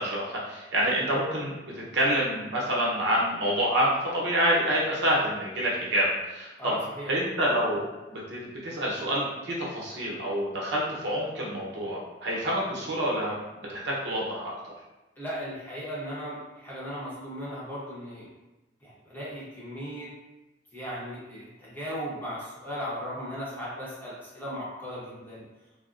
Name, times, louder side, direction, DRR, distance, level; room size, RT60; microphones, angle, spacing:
voice 1, 0.0-6.8 7.1-13.4 13.7-14.7, equal, 65° right, -5 dB, 0.8 m, -27 dB
voice 2, 6.6-7.1 15.2-18.3 18.8-20.1 20.7-25.4, equal, 10° left, -8 dB, 0.8 m, -37 dB
3.5 x 2.0 x 2.5 m, 1.1 s
head